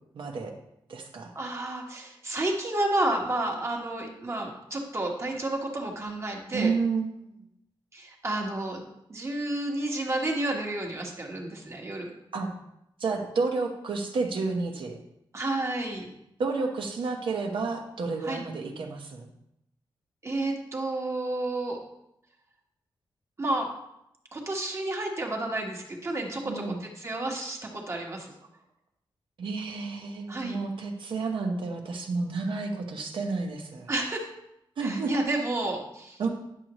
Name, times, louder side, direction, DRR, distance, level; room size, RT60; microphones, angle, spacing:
voice 1, 0.1-0.5 0.9-1.3 6.5-7.3 12.3-12.5 13.0-15.0 16.4-19.3 26.4-26.8 29.4-33.9 34.8-35.1 36.2-36.3, right 4 dB, 75° right, 2 dB, 1.1 m, -30 dB
voice 2, 1.3-6.7 7.9-8.8 9.1-12.1 15.3-16.1 18.2-18.4 20.2-21.8 23.4-23.7 24.3-28.3 30.3-30.6 33.9-34.3 34.8-36.2, right 2 dB, 30° right, 0 dB, 1.4 m, -31 dB
9.9 x 6.5 x 3.0 m, 0.81 s
wide cardioid pair, 130°, 9 cm